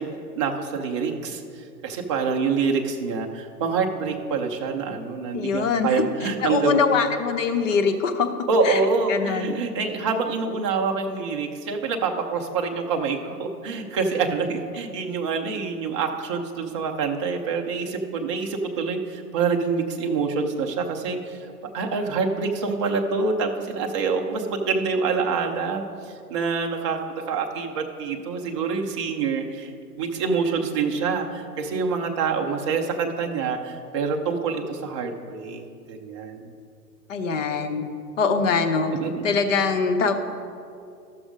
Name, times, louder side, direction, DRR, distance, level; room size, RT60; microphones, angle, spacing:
voice 1, 0.0-7.1 8.5-21.4 21.7-36.5 39.0-39.3, right 4 dB, 20° right, 2 dB, 0.4 m, -26 dB
voice 2, 5.3-5.9 6.4-8.8 9.1-9.5 37.1-37.9 38.2-38.9 39.2-40.1, left 5 dB, 50° left, 6 dB, 1.1 m, -23 dB
13.0 x 6.2 x 5.0 m, 2.5 s
hypercardioid pair, 130°, 48 cm